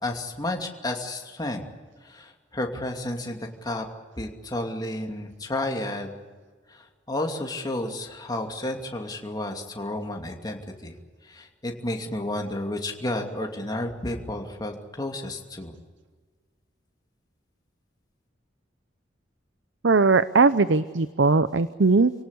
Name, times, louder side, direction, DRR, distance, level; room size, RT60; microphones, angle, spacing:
voice 1, 0.0-1.6 2.0-3.8 4.2-6.2 6.7-11.0 11.2-15.7, left 1 dB, 20° left, 2 dB, 2.6 m, -32 dB
voice 2, 19.8-22.1, right 3 dB, 75° right, 14 dB, 0.7 m, -19 dB
28.0 x 18.0 x 8.4 m, 1.4 s
head